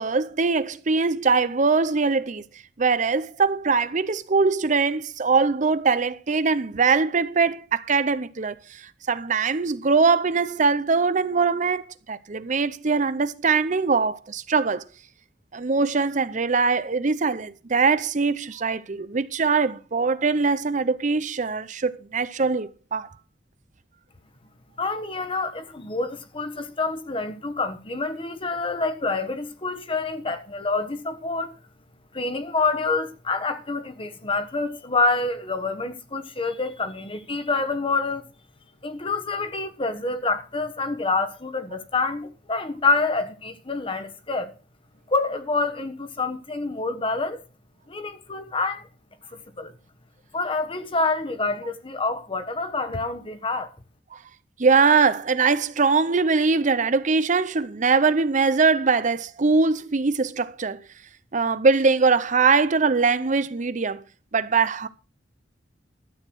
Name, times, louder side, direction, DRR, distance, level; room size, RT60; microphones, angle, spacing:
voice 1, 0.0-2.4 2.8-14.8 15.5-23.1 54.1-54.2 54.6-60.8 61.3-64.0 64.3-64.9, right 4 dB, 45° right, 0.7 m, -22 dB
voice 2, 24.8-31.5 32.1-38.3 38.8-44.5 45.1-47.4 47.9-48.9 49.3-49.7 50.3-53.7, left 3 dB, 30° left, 1.3 m, -27 dB
12.5 x 8.2 x 6.1 m
head